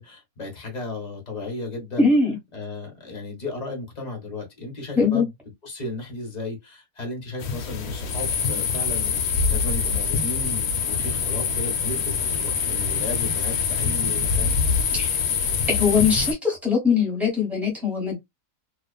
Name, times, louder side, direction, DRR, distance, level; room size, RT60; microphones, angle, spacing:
voice 1, 0.0-2.1 2.5-5.3 5.6-9.2 9.5-14.6, left 2 dB, 35° left, 0.9 m, -34 dB
voice 2, 2.0-2.4 4.9-5.2 14.9-15.1 15.7-18.1, left 4 dB, ahead, 1.0 m, -21 dB
sound 1, 7.4-16.3, left 6 dB, 80° left, 1.1 m, -24 dB
2.4 x 2.3 x 2.3 m
omnidirectional pair, 1.6 m